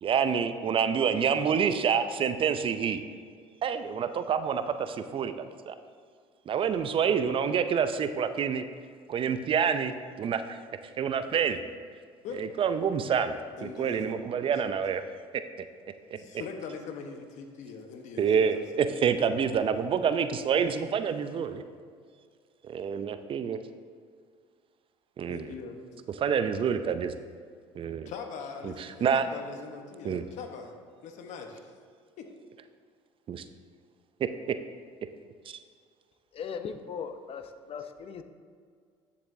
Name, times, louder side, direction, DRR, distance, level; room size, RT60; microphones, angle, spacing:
voice 1, 0.0-3.0 3.6-5.7 6.5-8.6 9.1-10.6 11.0-11.6 12.4-13.4 13.6-15.0 18.2-21.6 22.6-23.6 25.2-25.5 26.2-27.1 27.8-28.1 28.6-28.7 29.0-29.3 30.0-30.2 33.3-33.4 35.5-35.6, right 7 dB, 40° right, 10 dB, 0.5 m, -27 dB
voice 2, 13.6-14.3 16.1-19.0 19.3-19.4 25.3-25.8 26.7-26.8 28.1-30.8 31.0-31.7 32.2-32.3, left 5 dB, 65° left, 5 dB, 1.0 m, -42 dB
voice 3, 36.3-38.2, left 6 dB, 45° left, 9 dB, 0.6 m, -38 dB
9.9 x 6.9 x 2.7 m, 2.1 s
supercardioid pair, 85°, 13 cm